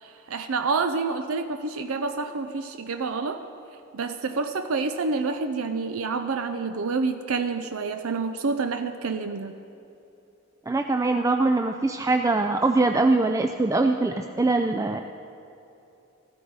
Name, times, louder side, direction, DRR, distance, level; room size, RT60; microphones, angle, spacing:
voice 1, 0.0-3.4 3.9-9.6, right 4 dB, 75° right, 8 dB, 0.5 m, -28 dB
voice 2, 10.7-15.0, right 3 dB, 15° right, 5 dB, 0.3 m, -22 dB
14.5 x 13.0 x 4.7 m, 2.9 s
head